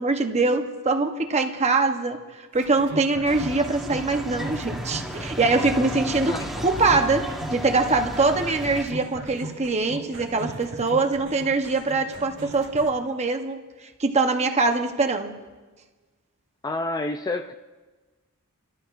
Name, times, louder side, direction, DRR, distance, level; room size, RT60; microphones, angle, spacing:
voice 1, 0.0-2.2 2.5-15.3, right 3 dB, 30° right, 0.8 m, -23 dB
sound 1, 2.5-12.9, right 2 dB, 55° right, 1.8 m, -39 dB
sound 2, 3.3-8.8, equal, ahead, 1.3 m, -33 dB
voice 2, 16.6-17.5, left 2 dB, 15° left, 0.3 m, -28 dB
26.5 x 12.5 x 2.5 m
head